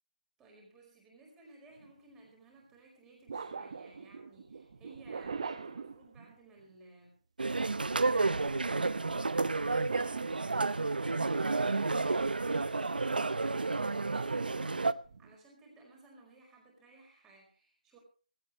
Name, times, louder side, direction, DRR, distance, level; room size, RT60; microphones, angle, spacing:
voice 1, 0.4-7.2 15.2-18.0, right 2 dB, 10° right, 0 dB, 4.8 m, -57 dB
sound 1, 1.7-1.9 3.3-6.7 9.7-11.1 14.1-15.3, right 5 dB, 40° right, 1.5 m, -43 dB
sound 2, 7.4-14.9, right 3 dB, 75° right, 0.9 m, -31 dB
18.0 x 16.5 x 3.2 m, 0.36 s
figure-of-eight pair, 170°, 5 cm